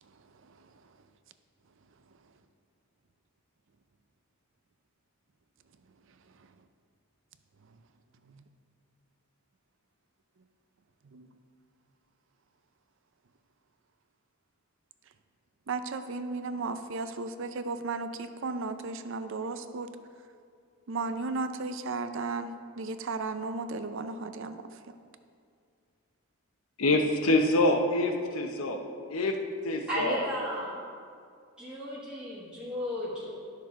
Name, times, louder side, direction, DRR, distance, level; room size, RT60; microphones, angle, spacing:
voice 1, 0.0-0.9 6.3-6.5 7.6-7.8 8.2-8.4 11.0-11.3 15.7-19.9 20.9-25.0, right 3 dB, 60° right, 10 dB, 0.5 m, -35 dB
voice 2, 26.8-28.8 29.1-29.4 29.6-30.2, left 2 dB, 75° left, 4 dB, 0.9 m, -25 dB
voice 3, 29.9-30.8 31.6-33.3, equal, 5° right, -9 dB, 1.3 m, -34 dB
11.5 x 6.5 x 3.7 m, 2.2 s
head